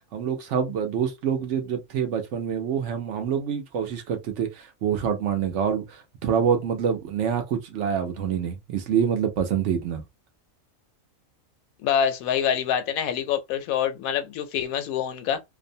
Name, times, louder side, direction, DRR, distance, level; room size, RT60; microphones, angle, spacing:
voice 1, 0.1-10.0, right 8 dB, 65° right, 0.9 m, -26 dB
voice 2, 11.8-15.4, left 8 dB, 85° left, 1.0 m, -26 dB
2.6 x 2.1 x 2.6 m
omnidirectional pair, 1.4 m